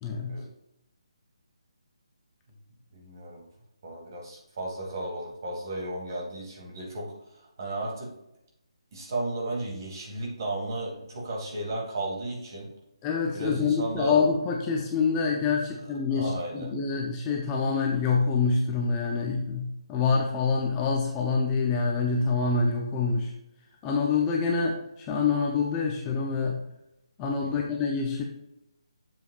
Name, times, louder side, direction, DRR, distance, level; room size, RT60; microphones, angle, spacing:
voice 1, 0.0-0.4 13.0-23.3 23.8-26.6 27.2-28.2, left 4 dB, 15° left, 0 dB, 0.5 m, -26 dB
voice 2, 2.9-3.5 3.8-8.1 8.9-12.7 13.3-14.3 16.1-16.7 27.4-27.6, right 1 dB, 40° right, -2 dB, 2.5 m, -34 dB
7.9 x 7.2 x 2.4 m, 0.87 s
hypercardioid pair, 170°, 3 cm